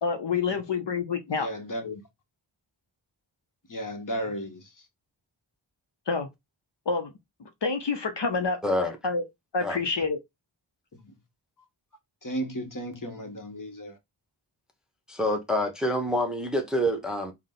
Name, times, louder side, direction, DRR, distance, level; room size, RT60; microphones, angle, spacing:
voice 1, 0.0-1.5 6.1-6.3 6.9-7.1 7.4-8.6 9.0-9.3 9.5-10.2, left 4 dB, 60° left, 0.8 m, -28 dB
voice 2, 1.4-2.0 3.7-4.6 11.0-11.1 12.2-14.0, equal, 40° left, 1.2 m, -34 dB
voice 3, 8.6-9.0 9.6-9.8 15.1-17.3, equal, ahead, 0.8 m, -27 dB
3.8 x 2.2 x 3.7 m
wide cardioid pair, 50°, 48 cm